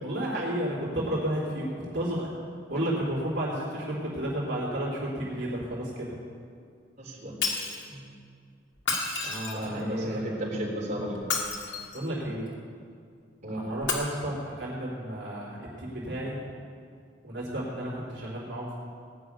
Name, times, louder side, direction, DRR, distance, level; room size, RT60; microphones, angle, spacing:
voice 1, 0.0-2.3 2.7-6.2 7.9-8.1 9.2-10.2 11.7-12.5 13.5-16.4 17.2-18.7, right 1 dB, 65° right, -5 dB, 3.3 m, -32 dB
voice 2, 7.0-7.4 9.5-11.1 13.4-13.6, equal, 40° right, -5 dB, 3.8 m, -33 dB
Shatter, 7.4-7.8 8.8-9.8 11.2-12.1 13.8-13.9, left 4 dB, 90° left, 2.3 m, -30 dB
18.5 x 6.3 x 9.3 m, 2.2 s
head